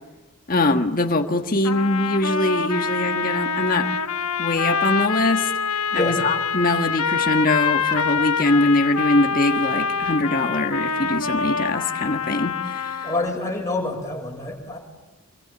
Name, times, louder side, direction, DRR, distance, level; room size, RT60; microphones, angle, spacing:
voice 1, 0.5-3.9 4.4-5.5 5.9-13.0, left 2 dB, 40° left, 5 dB, 1.5 m, -22 dB
sound 1, 1.6-13.3, left 5 dB, 80° left, 1.3 m, -25 dB
voice 2, 13.0-14.8, left 2 dB, 15° left, -1 dB, 6.4 m, -27 dB
26.0 x 23.0 x 8.6 m, 1.1 s
head